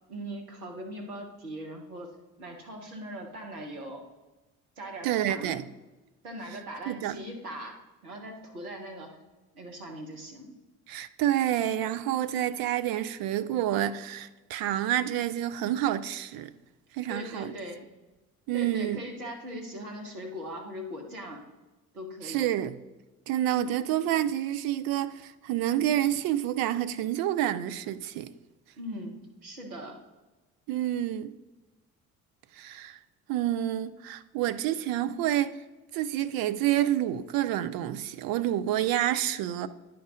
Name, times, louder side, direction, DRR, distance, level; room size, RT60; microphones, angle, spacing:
voice 1, 0.1-4.0 4.8-5.6 6.2-9.1 9.5-10.6 17.1-17.8 18.5-21.4 21.9-22.5 28.8-29.9, equal, 85° right, 1.2 m, -40 dB
voice 2, 5.0-5.7 6.9-7.2 10.9-16.5 16.9-17.5 18.5-19.0 22.2-22.8 23.3-28.3 30.7-31.4 32.5-33.0 33.3-35.6 35.9-39.7, right 12 dB, 55° right, 0.6 m, -28 dB
11.0 x 4.5 x 3.7 m
figure-of-eight pair, 50°, 43 cm